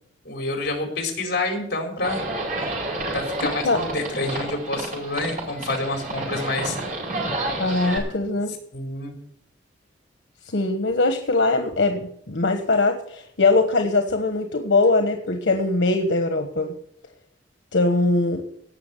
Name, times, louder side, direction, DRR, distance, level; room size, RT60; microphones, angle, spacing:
voice 1, 0.2-2.2 2.6-2.7 3.1-6.8 8.7-9.2, left 2 dB, 60° left, 2 dB, 4.1 m, -28 dB
Livestock farm animals working animals, 2.0-8.0, right 2 dB, 50° right, 5.1 m, -30 dB
voice 2, 7.6-8.5 10.5-16.7 17.7-18.4, left 3 dB, 90° left, 6 dB, 1.2 m, -21 dB
17.5 x 6.2 x 8.1 m, 0.70 s
head